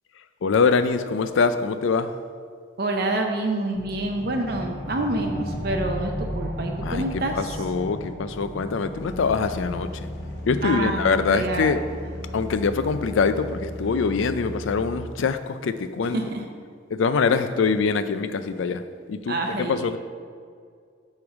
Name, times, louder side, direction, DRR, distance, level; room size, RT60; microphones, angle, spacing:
voice 1, 0.4-2.1 6.8-10.1 10.5-11.8 12.3-16.2 16.9-20.0, left 5 dB, 80° left, 11 dB, 0.4 m, -24 dB
voice 2, 2.8-7.5 10.6-11.7 16.0-16.4 17.3-17.4 19.3-19.9, right 2 dB, 50° right, 3 dB, 0.6 m, -27 dB
sound 1, 3.7-14.8, equal, 5° right, 1.7 m, -36 dB
sound 2, 9.0-15.0, left 1 dB, 60° left, 0.8 m, -36 dB
8.3 x 3.2 x 6.2 m, 2.1 s
head